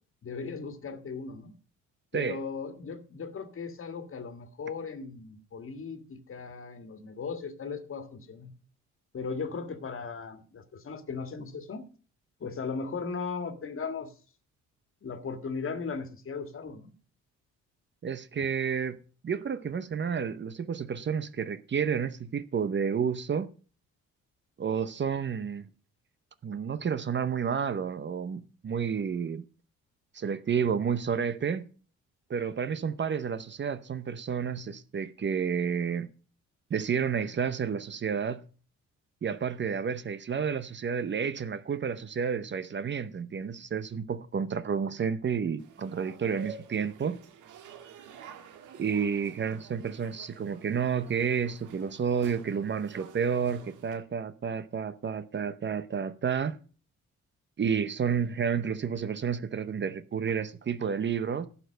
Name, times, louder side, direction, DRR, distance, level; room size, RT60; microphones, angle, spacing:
voice 1, 0.2-1.5 2.1-8.5 9.1-11.8 12.4-14.1 15.0-16.9, left 5 dB, 45° left, 1.8 m, -37 dB
voice 2, 18.0-23.5 24.6-25.7 26.4-29.4 30.1-31.7 32.3-36.1 36.7-38.4 39.2-47.2 48.7-56.6 57.6-61.5, right 7 dB, 40° right, 0.8 m, -30 dB
sound 1, 45.6-54.0, right 7 dB, 90° right, 1.7 m, -49 dB
11.5 x 6.7 x 6.6 m
cardioid pair, 90°, 30 cm